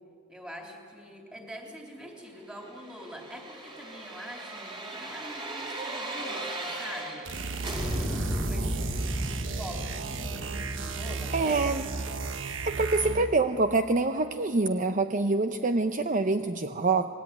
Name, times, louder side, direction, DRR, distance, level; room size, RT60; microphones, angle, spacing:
voice 1, 0.3-7.3 8.3-9.0 9.6-12.3, equal, 5° right, 1 dB, 3.7 m, -44 dB
sound 1, 2.6-7.3 7.6-12.5 12.8-12.9, right 1 dB, 25° right, 4.7 m, -36 dB
sound 2, 7.3-13.4, right 3 dB, 65° right, 1.4 m, -34 dB
voice 2, 11.3-11.9 12.6-17.1, right 3 dB, 40° right, 8 dB, 0.7 m, -26 dB
27.0 x 20.5 x 9.5 m, 2.3 s
head